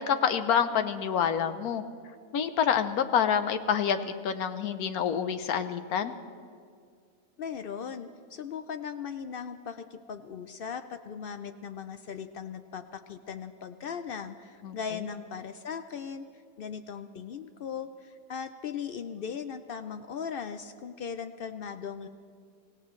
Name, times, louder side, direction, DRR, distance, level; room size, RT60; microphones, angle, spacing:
voice 1, 0.0-1.8 2.3-4.0 4.2-6.1 14.6-14.8, left 8 dB, 85° left, 10 dB, 1.3 m, -27 dB
voice 2, 7.4-16.2 16.6-22.1, left 7 dB, 65° left, 10 dB, 0.5 m, -38 dB
25.0 x 17.0 x 3.1 m, 2.2 s
omnidirectional pair, 1.5 m